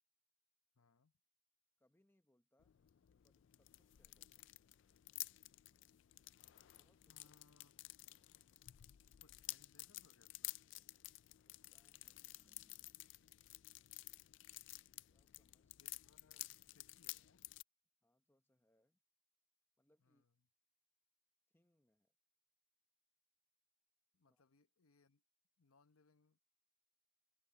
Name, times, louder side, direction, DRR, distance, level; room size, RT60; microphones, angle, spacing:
voice 1, 0.7-1.1 7.1-7.7 9.2-10.6 15.8-17.5 20.0-20.4 24.1-25.2 25.6-26.4, left 4 dB, 85° left, 0.9 m, -73 dB
voice 2, 1.8-2.8 3.2-4.6 6.7-7.2 11.4-12.6 15.1-15.8 18.0-19.0 19.8-20.2 21.5-22.1 24.2-24.4, left 1 dB, 10° left, 0.9 m, -80 dB
sound 1, 2.6-17.6, left 18 dB, 60° left, 0.3 m, -53 dB
sound 2, 10.7-12.9, right 1 dB, 10° right, 1.1 m, -85 dB
head